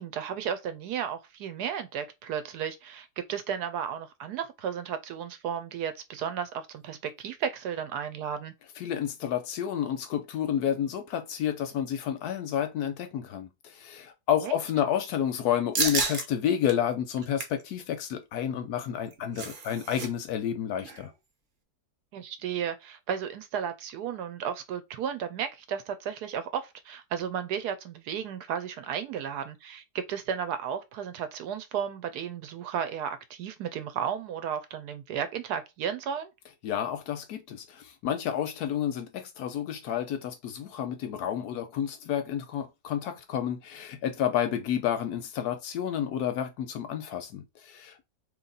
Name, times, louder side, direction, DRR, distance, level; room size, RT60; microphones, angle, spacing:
voice 1, 0.0-8.5 14.4-14.6 22.1-36.3, right 8 dB, 75° right, 1.1 m, -34 dB
voice 2, 8.8-21.1 36.6-48.1, left 9 dB, 70° left, 1.0 m, -30 dB
sound 1, 15.7-16.2 16.7-16.8 17.2-17.6 18.9-20.1 20.3-20.5 20.8-21.1, right 4 dB, 50° right, 0.6 m, -31 dB
3.1 x 2.8 x 3.8 m
omnidirectional pair, 1.9 m